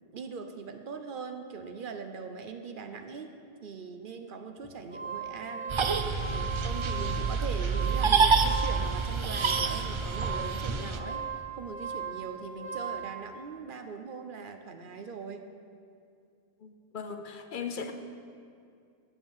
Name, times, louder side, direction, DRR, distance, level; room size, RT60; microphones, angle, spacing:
voice 1, 0.0-3.3 3.6-5.8 6.2-11.3 11.6-15.4, right 5 dB, 60° right, 6 dB, 0.8 m, -41 dB
sound 1, 4.6-13.1, right 6 dB, 5° right, 1.1 m, -38 dB
sound 2, 5.7-11.0, right 5 dB, 45° right, 0.4 m, -27 dB
voice 2, 16.6-17.9, left 6 dB, 60° left, 6 dB, 0.8 m, -38 dB
8.0 x 7.4 x 7.1 m, 2.3 s
omnidirectional pair, 1.0 m